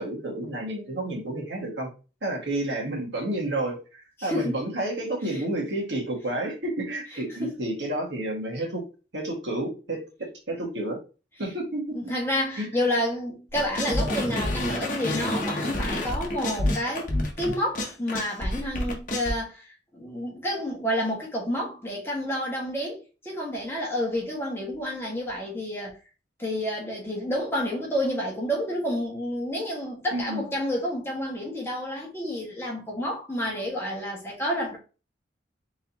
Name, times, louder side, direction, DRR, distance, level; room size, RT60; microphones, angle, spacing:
voice 1, 0.0-1.9 2.2-8.8 9.1-11.0 11.4-12.0 12.6-12.8 30.1-30.5, right 1 dB, 80° right, 1.9 m, -30 dB
voice 2, 4.2-4.6 5.3-5.4 7.1-7.6 11.9-17.1 17.4-26.0 26.4-34.8, equal, 15° left, 1.6 m, -29 dB
sound 1, 13.5-19.3, left 1 dB, 50° left, 1.1 m, -28 dB
4.2 x 3.9 x 2.9 m
head